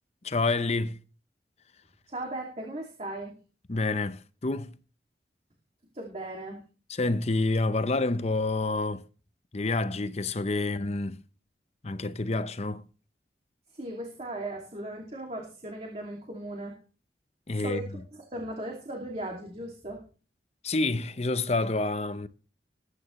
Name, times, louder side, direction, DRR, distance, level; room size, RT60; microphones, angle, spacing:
voice 1, 0.2-1.0 3.7-4.8 6.9-9.0 9.5-11.2 11.8-12.9 17.5-17.8 20.6-22.3, left 2 dB, 40° left, 0.7 m, -28 dB
voice 2, 2.1-3.3 5.9-6.6 13.7-16.8 17.5-20.0, right 1 dB, 35° right, 2.5 m, -37 dB
20.0 x 9.6 x 3.2 m
head